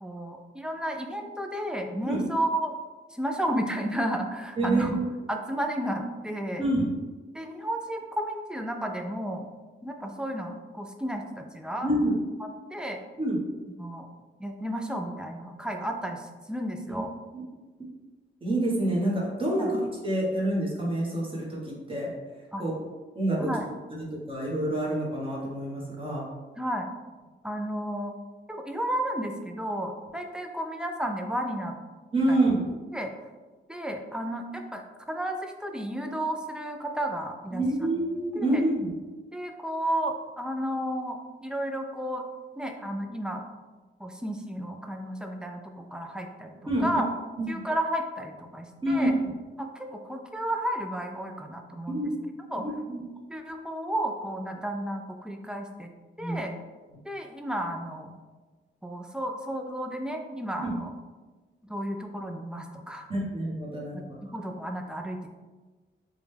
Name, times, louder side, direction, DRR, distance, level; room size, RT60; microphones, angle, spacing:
voice 1, 0.0-2.7 3.1-4.9 5.3-6.6 7.3-9.4 9.8-11.9 12.4-13.0 13.8-14.1 14.4-17.1 19.6-19.7 22.5-22.6 23.4-23.7 26.6-26.9 27.4-28.1 28.5-31.7 32.3-32.4 32.9-33.1 33.7-34.8 35.1-37.6 38.4-38.6 39.3-42.2 42.6-43.4 44.0-47.1 47.5-49.1 49.6-52.1 52.5-52.7 53.3-55.9 56.2-56.5 57.0-58.1 58.8-60.9 61.6-63.1 63.9-65.3, right 1 dB, 5° right, 3 dB, 0.3 m, -32 dB
voice 2, 4.6-5.1 6.6-6.9 11.8-12.2 13.2-13.4 16.9-17.0 17.3-17.4 18.4-22.1 22.6-23.5 24.3-26.3 32.1-32.7 37.5-38.9 46.7-47.0 47.4-47.6 48.8-49.2 51.9-52.1 52.9-53.0 56.2-56.4 60.6-60.7 63.1-64.3, right 1 dB, 25° right, -4 dB, 1.1 m, -27 dB
4.9 x 2.2 x 3.3 m, 1.3 s
wide cardioid pair, 125°, 20 cm